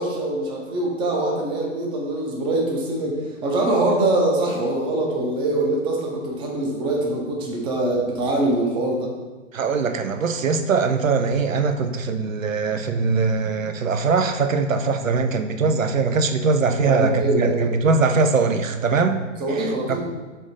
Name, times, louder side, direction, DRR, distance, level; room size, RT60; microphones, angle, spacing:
voice 1, 0.0-9.1 16.8-17.7 19.4-20.0, right 2 dB, 15° right, -1 dB, 0.6 m, -23 dB
voice 2, 9.5-19.2 19.5-19.7, right 4 dB, 90° right, 7 dB, 0.5 m, -21 dB
3.8 x 3.5 x 4.0 m, 1.3 s
figure-of-eight pair, 115°, 38 cm